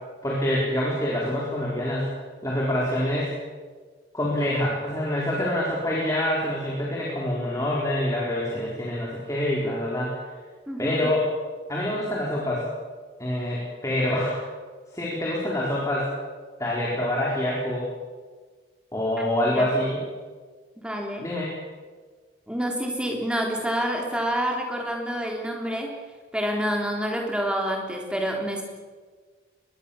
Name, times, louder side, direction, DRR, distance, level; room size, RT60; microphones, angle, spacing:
voice 1, 0.2-2.1 2.4-3.4 4.1-10.2 10.8-11.2 11.7-12.7 13.2-14.4 14.9-16.1 16.6-17.9 18.9-20.0 21.2-21.5, left 1 dB, 15° left, -5 dB, 4.3 m, -26 dB
voice 2, 10.7-11.1 19.2-19.3 19.6-19.7 20.8-21.3 22.5-26.0 26.3-28.6, equal, 5° right, 1 dB, 3.6 m, -28 dB
24.0 x 20.5 x 7.2 m, 1.5 s
head